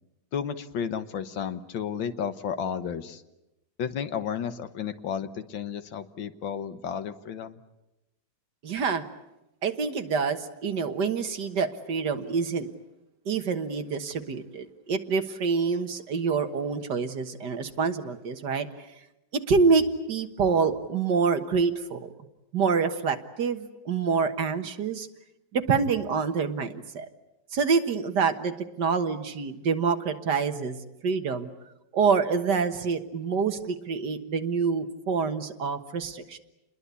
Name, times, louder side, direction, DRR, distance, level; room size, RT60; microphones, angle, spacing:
voice 1, 0.3-3.2 3.8-7.6, left 7 dB, 85° left, 10 dB, 2.0 m, -32 dB
voice 2, 8.6-9.0 9.6-12.7 13.3-18.7 19.3-22.1 22.5-25.1 25.5-27.1 27.5-30.8 31.0-31.5 31.9-36.4, right 5 dB, 65° right, 8 dB, 2.0 m, -26 dB
29.0 x 21.5 x 8.3 m, 0.93 s
omnidirectional pair, 2.0 m